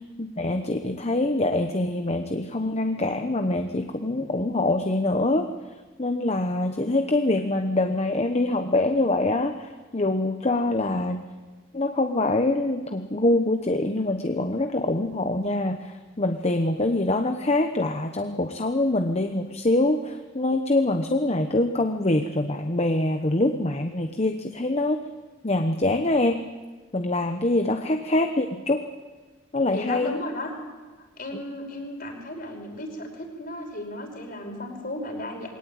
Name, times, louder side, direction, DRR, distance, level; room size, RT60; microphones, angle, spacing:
voice 1, 0.2-5.5 6.0-11.2 11.7-25.0 25.4-26.4 26.9-28.8 29.5-30.1, left 2 dB, 35° left, 6 dB, 1.0 m, -24 dB
voice 2, 29.7-30.5 31.2-35.5, left 1 dB, 50° left, 2 dB, 5.4 m, -35 dB
22.5 x 18.5 x 9.0 m, 1.3 s
head